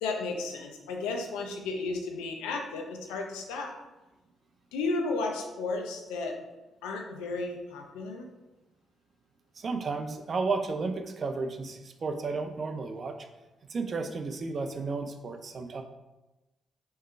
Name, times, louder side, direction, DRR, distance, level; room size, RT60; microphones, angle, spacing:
voice 1, 0.0-3.7 4.7-6.4 6.8-8.3, left 3 dB, 85° left, 2 dB, 0.7 m, -33 dB
voice 2, 9.6-13.2 13.7-15.8, right 4 dB, 50° right, 6 dB, 0.6 m, -33 dB
3.6 x 3.3 x 4.5 m, 1.0 s
supercardioid pair, 50°, 0 cm